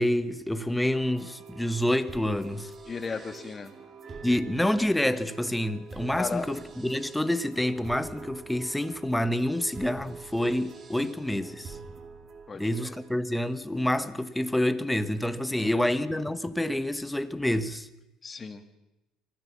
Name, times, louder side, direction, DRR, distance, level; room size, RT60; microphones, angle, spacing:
voice 1, 0.0-2.7 4.2-11.8 12.5-17.9, left 1 dB, 5° left, 1.2 m, -28 dB
sound 1, 0.9-13.1, right 4 dB, 35° right, 2.4 m, -45 dB
voice 2, 2.9-3.7 6.2-6.5 12.5-12.9 15.6-15.9 18.2-18.6, left 5 dB, 25° left, 2.2 m, -35 dB
24.0 x 15.0 x 7.3 m
supercardioid pair, 100°, 0 cm